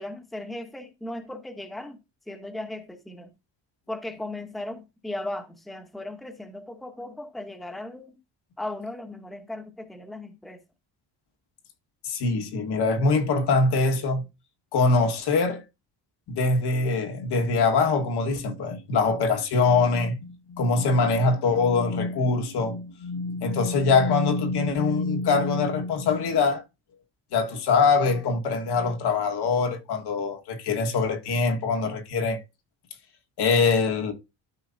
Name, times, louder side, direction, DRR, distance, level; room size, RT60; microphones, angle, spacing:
voice 1, 0.0-2.0 2.3-3.3 3.9-8.2 8.6-10.6, left 1 dB, ahead, 0.9 m, -37 dB
voice 2, 12.0-14.3 14.7-15.6 16.3-26.6 27.3-32.4 33.4-34.1, left 4 dB, 65° left, 1.7 m, -23 dB
12.5 x 4.8 x 2.7 m
cardioid pair, 145°, 43 cm